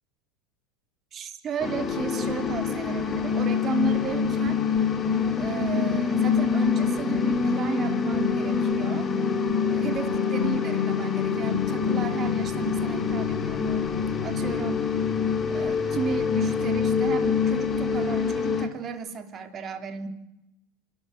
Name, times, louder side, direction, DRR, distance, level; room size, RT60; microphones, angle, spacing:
voice 1, 1.1-4.6 5.3-9.1 9.7-13.9 14.2-14.9 15.5-20.1, right 6 dB, 35° right, 7 dB, 3.3 m, -34 dB
sound 1, 1.6-18.7, left 6 dB, 25° left, 3.4 m, -25 dB
27.5 x 13.5 x 9.3 m, 0.90 s
hypercardioid pair, 90°, 0 cm